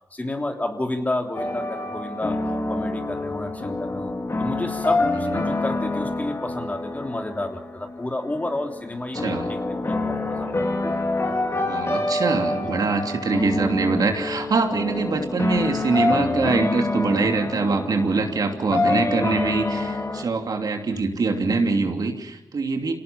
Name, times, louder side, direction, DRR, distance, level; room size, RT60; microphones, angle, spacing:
voice 1, 0.1-10.5 12.5-12.7 13.8-14.0 19.2-19.5 20.9-21.1, left 1 dB, 20° left, 4 dB, 3.3 m, -31 dB
sound 1, 1.3-20.2, left 2 dB, 40° left, 4.2 m, -27 dB
voice 2, 9.1-9.5 11.7-22.9, right 4 dB, 65° right, 4 dB, 2.9 m, -24 dB
26.5 x 18.5 x 7.1 m, 0.97 s
cardioid pair, 60°, 7 cm